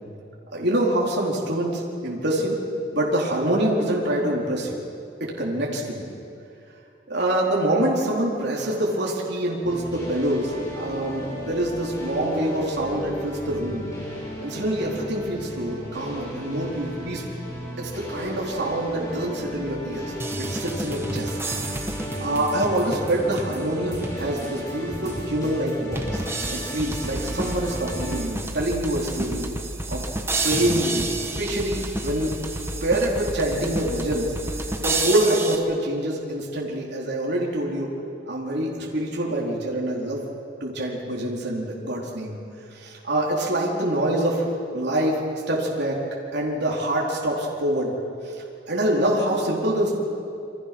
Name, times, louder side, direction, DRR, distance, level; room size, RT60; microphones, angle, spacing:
voice 1, 0.5-2.6 2.9-4.8 5.2-6.1 7.1-13.9 14.4-17.2 17.8-21.4 22.2-26.2 26.5-29.5 29.9-30.0 30.4-32.3 32.8-34.3 34.8-37.9 38.3-40.2 40.6-42.4 42.7-45.2 45.5-46.0 46.3-47.9 48.2-49.9, right 1 dB, 55° right, -3 dB, 4.2 m, -25 dB
sound 1, 9.6-28.2, equal, 20° left, 7.2 m, -35 dB
sound 2, 20.2-24.6 25.1-25.2 26.0-35.6, right 2 dB, 10° right, 1.4 m, -30 dB
28.5 x 25.0 x 6.2 m, 2.6 s
head